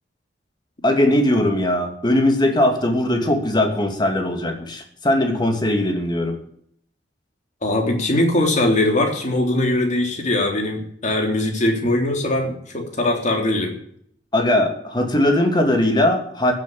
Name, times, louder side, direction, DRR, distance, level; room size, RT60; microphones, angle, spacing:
voice 1, 0.8-6.4 14.3-16.5, left 1 dB, 25° left, 4 dB, 2.6 m, -19 dB
voice 2, 7.6-13.8, left 1 dB, 45° left, 2 dB, 3.5 m, -21 dB
15.0 x 7.7 x 8.6 m, 0.66 s
head